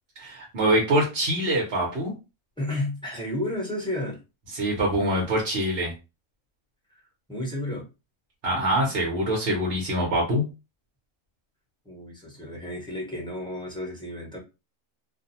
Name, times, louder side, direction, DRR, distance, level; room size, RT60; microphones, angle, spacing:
voice 1, 0.2-2.1 4.5-5.9 8.4-10.4, right 1 dB, 50° right, -3 dB, 0.9 m, -24 dB
voice 2, 2.6-4.2 7.3-7.9 11.8-14.4, left 1 dB, 5° left, -5 dB, 0.9 m, -32 dB
2.5 x 2.2 x 2.7 m, 0.27 s
omnidirectional pair, 1.5 m